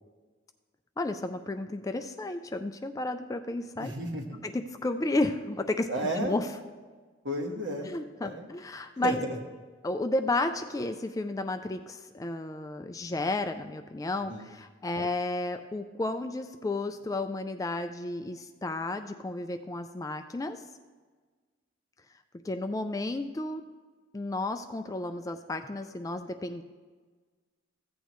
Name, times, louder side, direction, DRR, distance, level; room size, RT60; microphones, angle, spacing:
voice 1, 1.0-3.9 4.4-5.9 6.2-6.5 7.8-9.2 9.8-20.6 22.4-23.6 24.1-26.6, left 2 dB, 15° left, 8 dB, 0.3 m, -32 dB
voice 2, 3.8-4.4 5.9-6.4 7.2-7.9 8.2-8.5 9.0-9.4 14.3-14.5, right 1 dB, 60° right, 2 dB, 1.4 m, -32 dB
15.0 x 8.2 x 3.1 m, 1.4 s
head